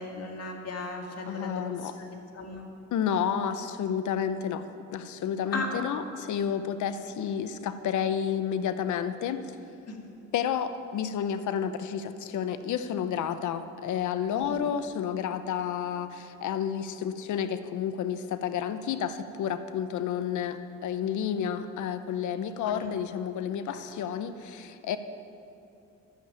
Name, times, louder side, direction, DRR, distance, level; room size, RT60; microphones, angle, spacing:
voice 1, 0.0-2.6 5.5-5.7 9.9-10.0 14.4-14.7 22.6-22.9 23.7-23.8, left 3 dB, 55° left, 1 dB, 2.1 m, -37 dB
voice 2, 1.3-1.9 2.9-9.5 10.3-25.0, left 8 dB, 75° left, 11 dB, 0.8 m, -31 dB
11.5 x 7.6 x 8.9 m, 2.7 s
cardioid pair, 90°, 30 cm